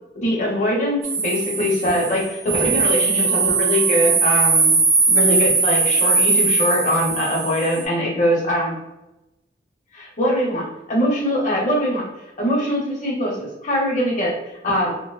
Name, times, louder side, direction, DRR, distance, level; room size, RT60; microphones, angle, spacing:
voice 1, 0.1-4.7 5.1-8.8 9.9-12.1 12.4-14.9, equal, 45° left, -2 dB, 0.7 m, -22 dB
sound 1, 1.0-7.8, right 4 dB, 70° right, 0.5 m, -19 dB
2.6 x 2.0 x 2.3 m, 0.95 s
head